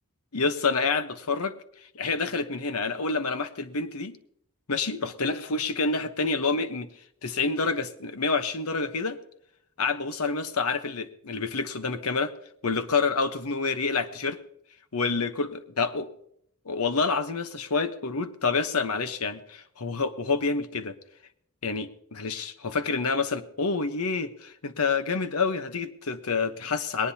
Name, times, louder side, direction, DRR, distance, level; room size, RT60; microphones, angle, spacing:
voice 1, 0.3-1.6 1.9-4.1 4.7-6.9 7.2-9.2 9.8-12.3 12.6-14.4 14.9-16.1 16.6-21.0 21.6-27.1, left 4 dB, 90° left, 10 dB, 1.1 m, -28 dB
20.0 x 18.5 x 2.9 m, 0.72 s
head